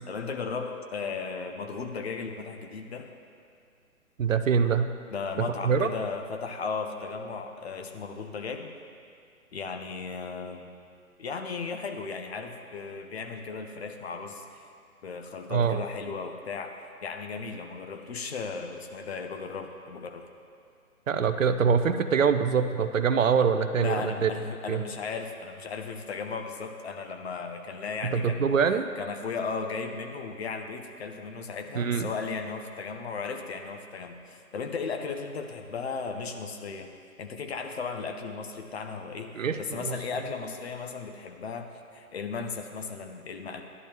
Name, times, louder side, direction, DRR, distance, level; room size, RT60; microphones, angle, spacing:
voice 1, 0.1-3.1 5.1-8.7 9.5-10.7 11.2-14.7 15.0-20.2 23.8-28.6 29.0-36.9 37.2-43.6, left 4 dB, 45° left, 5 dB, 0.9 m, -36 dB
voice 2, 4.2-4.9 5.4-5.9 15.5-15.8 21.1-24.3 24.7-24.8 28.1-28.9 31.8-32.1 39.4-40.0, right 6 dB, 65° right, 9 dB, 0.6 m, -24 dB
13.0 x 11.0 x 2.9 m, 2.3 s
figure-of-eight pair, 130°, 43 cm